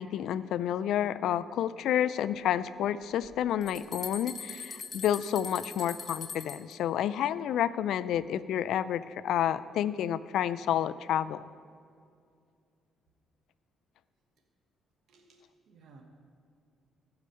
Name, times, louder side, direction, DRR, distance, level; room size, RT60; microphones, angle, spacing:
voice 1, 0.0-11.4, left 10 dB, 80° left, 15 dB, 0.3 m, -30 dB
sound 1, 3.2-6.7, left 5 dB, 40° left, 1.0 m, -41 dB
voice 2, 15.1-16.0, right 4 dB, 75° right, 2 dB, 1.1 m, -58 dB
14.5 x 4.8 x 5.6 m, 2.3 s
cardioid pair, 90°, 0 cm